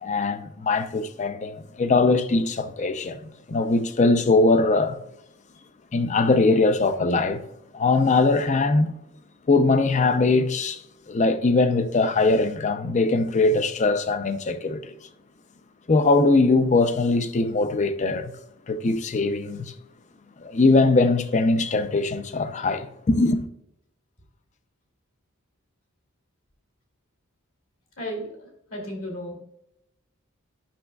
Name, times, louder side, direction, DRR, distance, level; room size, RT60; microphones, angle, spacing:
voice 1, 0.0-3.2 3.5-5.0 5.9-7.4 7.7-8.9 9.5-10.8 11.1-14.9 15.9-18.3 18.7-19.7 20.4-23.4, left 3 dB, 35° left, 0.5 m, -21 dB
voice 2, 28.0-29.4, equal, 65° left, 2.7 m, -34 dB
10.0 x 6.1 x 2.3 m
head